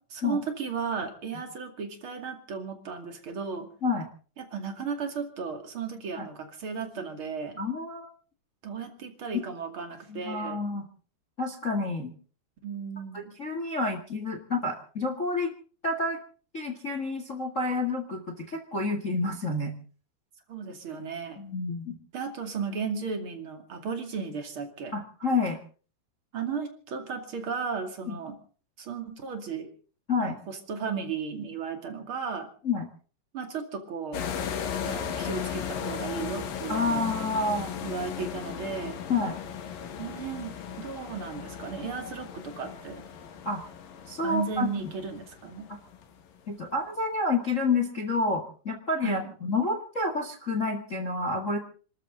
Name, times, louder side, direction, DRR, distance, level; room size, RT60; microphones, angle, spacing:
voice 1, 0.0-3.7 4.4-7.6 8.6-10.6 12.6-13.3 20.5-21.4 22.1-25.0 26.3-28.4 28.8-29.7 30.2-32.5 33.3-34.2 34.8-37.1 37.8-39.0 40.0-43.0 44.2-45.7 49.0-49.3, right 5 dB, 35° right, 5 dB, 2.7 m, -35 dB
voice 2, 7.6-8.1 10.1-10.8 11.4-12.1 13.1-15.5 15.8-16.2 16.5-19.8 21.4-21.9 24.9-25.6 28.1-28.2 30.1-30.4 32.6-32.9 36.7-37.7 39.1-39.4 43.4-43.6 44.1-44.7 46.5-51.6, left 3 dB, 45° left, 5 dB, 1.0 m, -29 dB
sound 1, 34.1-46.2, left 8 dB, 65° left, 3.2 m, -36 dB
28.0 x 13.0 x 3.9 m, 0.40 s
omnidirectional pair, 4.7 m